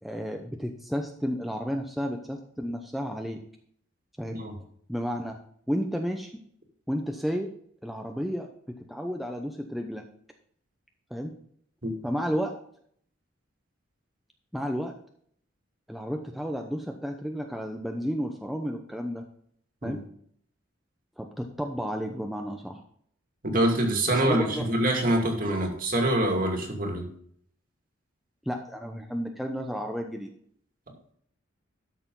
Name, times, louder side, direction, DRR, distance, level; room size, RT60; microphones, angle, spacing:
voice 1, 0.0-3.4 4.2-4.4 4.9-5.4 5.7-6.4 6.9-7.5 7.8-10.0 11.1-11.3 12.0-12.6 14.5-14.9 15.9-19.2 19.8-20.0 21.2-22.8 24.2-24.7 28.5-30.3, equal, ahead, 3 dB, 0.8 m, -32 dB
voice 2, 23.4-27.1, right 1 dB, 45° right, 2 dB, 2.4 m, -25 dB
12.5 x 6.8 x 3.9 m, 0.62 s
head